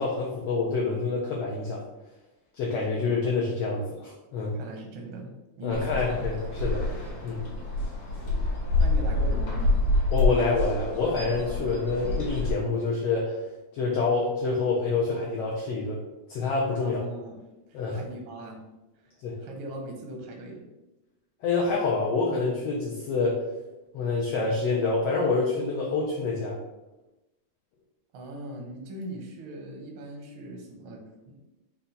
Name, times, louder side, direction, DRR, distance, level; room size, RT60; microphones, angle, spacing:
voice 1, 0.0-1.8 2.6-4.5 5.6-6.8 7.2-7.4 10.1-13.4 13.7-16.0 16.3-17.0 17.7-18.0 19.2-19.4 21.4-23.4 23.9-26.6, left 3 dB, 85° left, -3 dB, 1.4 m, -27 dB
voice 2, 4.5-5.3 5.6-6.0 8.8-9.7 16.8-18.6 18.9-19.1 19.4-20.6 28.1-31.4, right 1 dB, 75° right, 1 dB, 1.2 m, -40 dB
sound 1, 5.7-12.5, left 2 dB, 55° left, 1.7 m, -27 dB
5.5 x 2.3 x 3.9 m, 1.0 s
omnidirectional pair, 3.5 m